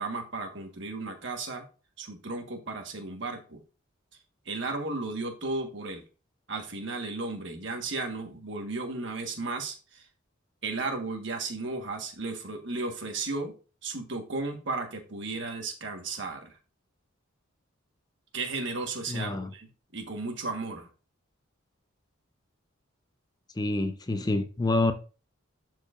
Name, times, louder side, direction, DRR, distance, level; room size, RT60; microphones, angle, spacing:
voice 1, 0.0-1.6 2.0-3.6 4.4-6.0 6.5-10.0 10.6-13.5 13.8-16.5 18.3-20.9, right 3 dB, 60° right, 1.4 m, -34 dB
voice 2, 19.1-19.5 23.6-24.9, left 2 dB, 20° left, 0.4 m, -27 dB
11.5 x 4.7 x 2.5 m
head